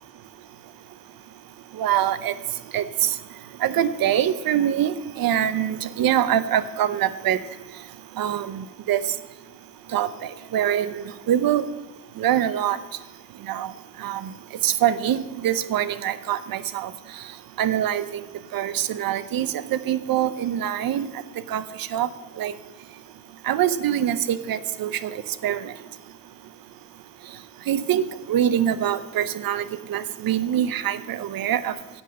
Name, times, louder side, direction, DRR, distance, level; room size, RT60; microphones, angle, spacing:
voice 1, 1.7-2.3 2.7-3.2 3.6-7.4 8.2-9.0 9.9-11.7 12.2-12.8 13.4-13.7 14.0-14.3 14.6-16.9 17.6-18.2 18.5-21.2 21.5-22.1 22.4-22.5 23.4-25.7 27.7-31.7, right 10 dB, 85° right, 15 dB, 0.7 m, -24 dB
9.7 x 8.1 x 6.3 m, 1.2 s
cardioid pair, 110°, 34 cm